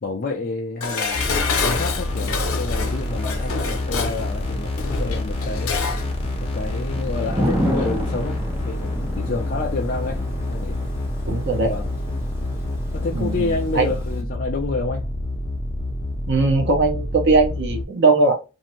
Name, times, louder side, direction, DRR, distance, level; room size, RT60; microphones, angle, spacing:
voice 1, 0.0-5.8 6.4-10.9 11.7-11.9 12.9-15.1, left 3 dB, 40° left, 0.4 m, -29 dB
Dishes pots and pans, 0.8-6.1 6.4-6.5, left 4 dB, 80° left, 0.7 m, -27 dB
sound 1, 1.1-17.8, left 1 dB, 25° left, 0.8 m, -27 dB
Thunder / Rain, 1.5-14.2, equal, 10° right, 0.6 m, -33 dB
voice 2, 11.3-11.7 13.1-13.9 16.3-18.4, right 3 dB, 50° right, 0.7 m, -19 dB
2.7 x 2.5 x 3.0 m
head